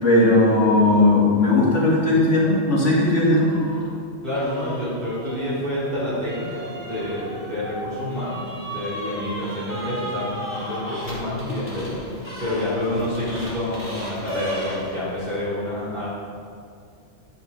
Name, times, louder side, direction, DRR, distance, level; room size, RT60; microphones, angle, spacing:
voice 1, 0.0-3.5, left 2 dB, 80° left, -5 dB, 2.8 m, -17 dB
sound 1, 3.3-3.9 4.3-15.2, equal, 10° left, 2.9 m, -35 dB
voice 2, 4.2-16.1, left 1 dB, 45° right, -11 dB, 3.3 m, -28 dB
12.0 x 8.9 x 4.1 m, 2.4 s
omnidirectional pair, 1.2 m